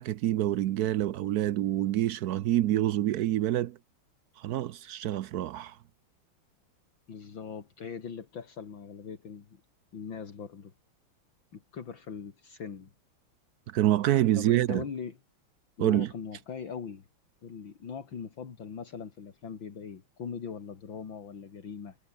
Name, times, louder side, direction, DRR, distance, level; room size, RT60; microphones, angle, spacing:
voice 1, 0.0-3.8 4.4-5.8 13.7-14.8 15.8-16.1, right 13 dB, 75° right, 0.8 m, -27 dB
voice 2, 7.1-9.6 9.9-10.7 11.5-12.9 14.4-15.2 15.8-17.1 17.4-22.0, left 6 dB, 65° left, 3.1 m, -40 dB
omnidirectional pair, 2.3 m